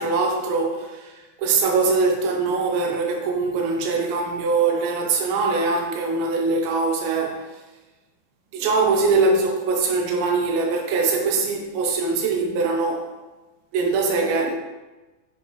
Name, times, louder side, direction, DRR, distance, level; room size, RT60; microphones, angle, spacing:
voice 1, 0.0-7.5 8.5-13.1 13.7-14.5, right 4 dB, 80° right, 3.2 m, -22 dB
8.3 x 6.2 x 3.1 m
omnidirectional pair, 5.1 m